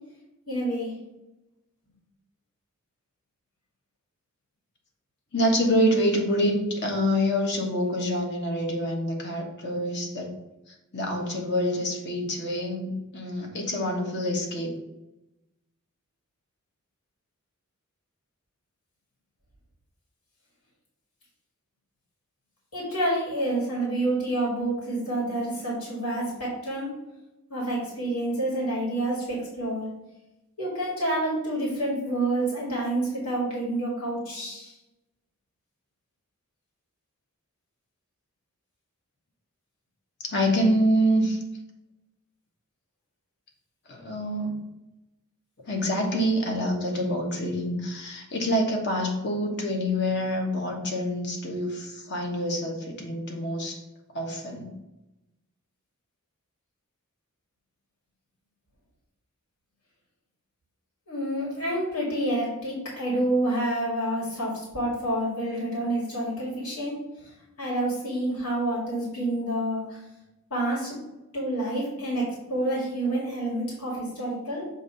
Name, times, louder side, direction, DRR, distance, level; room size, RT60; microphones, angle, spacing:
voice 1, 0.5-1.0 22.7-27.0 27.5-29.9 30.6-34.7 61.1-66.9 67.6-70.0 70.5-71.0 71.3-74.7, right 1 dB, 85° left, -4 dB, 2.2 m, -28 dB
voice 2, 5.3-10.4 10.7-14.8 40.2-41.4 43.9-44.6 45.6-53.8 54.1-54.8, equal, 55° left, 1 dB, 1.2 m, -26 dB
7.0 x 2.7 x 5.6 m, 0.96 s
head